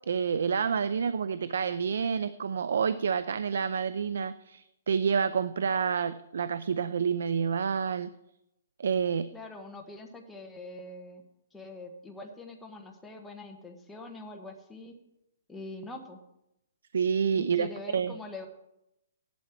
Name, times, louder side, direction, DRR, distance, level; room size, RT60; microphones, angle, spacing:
voice 1, 0.1-8.1 8.8-9.3 16.9-18.1, right 6 dB, 70° right, 14 dB, 0.5 m, -28 dB
voice 2, 9.3-11.2 11.5-15.0 15.5-16.2 17.3-18.5, left 2 dB, 5° left, 1 dB, 1.1 m, -44 dB
15.0 x 11.5 x 4.5 m, 0.85 s
hypercardioid pair, 175°, 0 cm